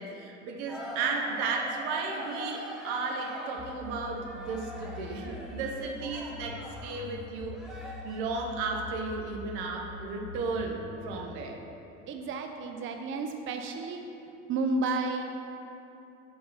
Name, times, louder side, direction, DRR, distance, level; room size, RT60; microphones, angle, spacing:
voice 1, 0.0-7.5 8.0-11.6, right 4 dB, 75° right, 1 dB, 0.9 m, -34 dB
sound 1, 0.7-7.1 7.5-8.4, equal, ahead, 1.1 m, -42 dB
sound 2, 3.6-11.3, left 5 dB, 40° left, 0.7 m, -45 dB
voice 2, 12.1-14.0 14.5-15.2, right 3 dB, 35° right, 4 dB, 0.5 m, -31 dB
5.2 x 4.0 x 5.5 m, 2.8 s
hypercardioid pair, 75°, 34 cm